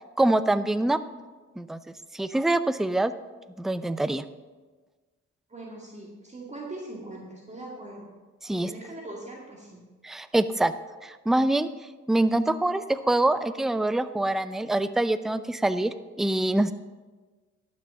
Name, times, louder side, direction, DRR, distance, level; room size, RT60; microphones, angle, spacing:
voice 1, 0.2-1.0 1.6-1.8 2.1-3.1 3.6-4.2 8.4-8.7 10.0-10.7 11.0-11.7 12.1-16.7, right 1 dB, ahead, 12 dB, 0.4 m, -25 dB
voice 2, 5.5-8.1 8.5-9.9, right 2 dB, 25° right, -2 dB, 2.1 m, -41 dB
11.5 x 6.3 x 7.0 m, 1.3 s
cardioid pair, 90°, 30 cm